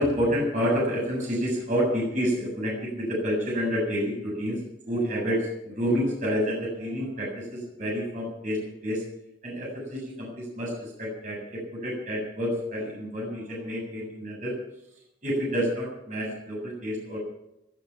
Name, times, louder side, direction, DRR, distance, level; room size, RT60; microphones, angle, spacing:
voice 1, 0.0-9.0 9.4-14.5 15.2-17.2, equal, 45° right, -2 dB, 7.3 m, -29 dB
17.0 x 13.5 x 5.8 m, 0.85 s
head